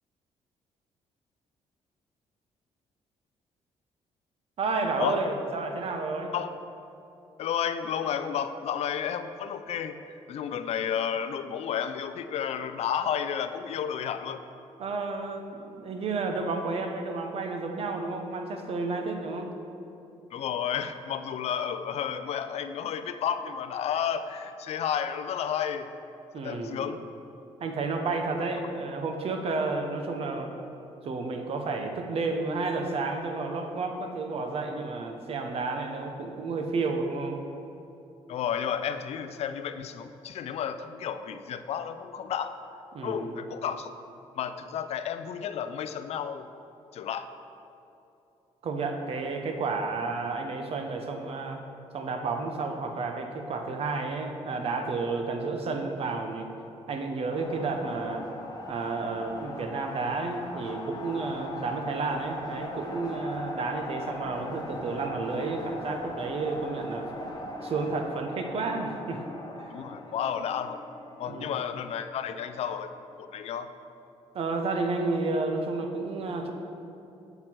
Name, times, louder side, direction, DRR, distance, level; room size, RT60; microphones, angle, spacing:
voice 1, 4.6-6.3 14.8-19.5 26.3-26.8 27.6-30.5 31.0-37.4 42.9-43.3 48.6-51.6 51.9-56.5 56.9-58.2 58.7-67.1 67.6-69.2 69.6-69.7 71.3-71.6 74.3-76.5, right 3 dB, 60° right, 4 dB, 0.8 m, -31 dB
voice 2, 7.4-14.4 20.3-25.9 26.4-27.0 38.3-42.6 43.0-43.9 44.4-46.5 46.9-47.3 69.7-70.8 71.2-72.9 73.2-73.7, left 8 dB, 65° left, 10 dB, 0.4 m, -32 dB
sound 1, 57.3-73.1, left 1 dB, 35° left, 1.0 m, -40 dB
7.9 x 5.9 x 4.5 m, 2.8 s
cardioid pair, 85°, 11 cm